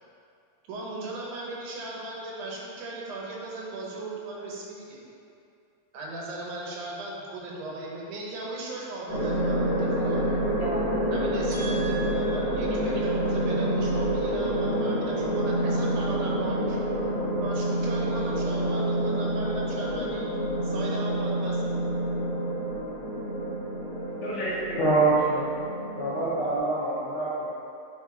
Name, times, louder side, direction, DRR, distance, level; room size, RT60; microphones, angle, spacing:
voice 1, 0.7-5.0 5.9-10.3 11.1-16.8 17.4-20.3 20.6-21.6, right 2 dB, 80° right, -3 dB, 2.5 m, -37 dB
sound 1, 9.1-26.6, right 1 dB, 45° right, 0.5 m, -28 dB
voice 2, 10.0-11.1 11.5-12.1 24.2-24.8, equal, 65° left, -8 dB, 2.4 m, -35 dB
voice 3, 24.8-25.6 26.0-27.5, right 3 dB, 80° left, -9 dB, 0.9 m, -25 dB
9.8 x 4.4 x 2.9 m, 2.4 s
omnidirectional pair, 3.5 m